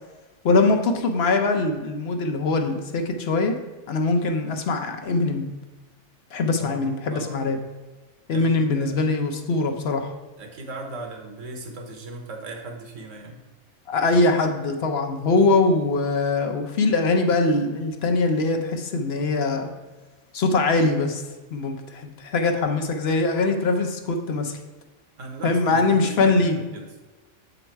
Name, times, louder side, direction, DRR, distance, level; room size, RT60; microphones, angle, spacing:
voice 1, 0.4-3.6 3.9-5.4 6.3-7.6 8.3-10.1 13.9-19.7 20.3-21.2 21.5-24.6 25.4-26.6, left 3 dB, 60° left, 4 dB, 0.9 m, -22 dB
voice 2, 6.6-7.4 8.3-9.0 10.4-13.4 25.2-26.9, right 2 dB, 90° right, 3 dB, 1.4 m, -38 dB
7.4 x 3.9 x 4.5 m, 1.2 s
omnidirectional pair, 1.3 m